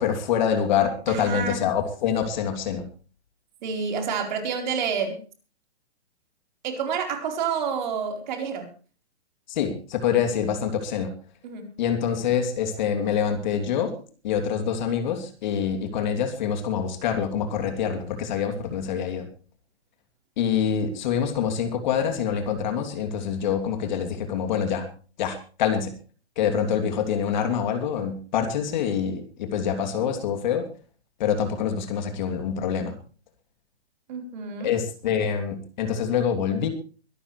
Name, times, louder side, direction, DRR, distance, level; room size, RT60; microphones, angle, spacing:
voice 1, 0.0-2.9 9.5-11.1 11.8-13.9 14.2-19.3 20.4-24.9 25.2-25.9 26.4-30.7 31.2-33.0 34.6-36.7, left 8 dB, 40° left, 6 dB, 3.0 m, -25 dB
voice 2, 1.1-1.6 3.6-5.2 6.6-8.7 11.4-11.7 34.1-34.7, right 6 dB, 40° right, 4 dB, 4.3 m, -28 dB
23.0 x 12.5 x 3.2 m, 0.38 s
hypercardioid pair, 150°, 34 cm